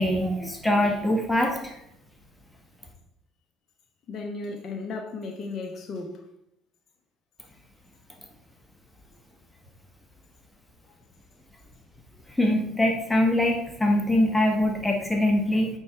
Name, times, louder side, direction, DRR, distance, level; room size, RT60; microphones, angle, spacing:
voice 1, 0.0-1.7 12.4-15.7, left 1 dB, 10° left, 2 dB, 1.4 m, -23 dB
voice 2, 4.1-6.2, left 3 dB, 40° left, 2 dB, 0.9 m, -35 dB
8.5 x 3.7 x 4.5 m, 0.79 s
figure-of-eight pair, 55°, 0 cm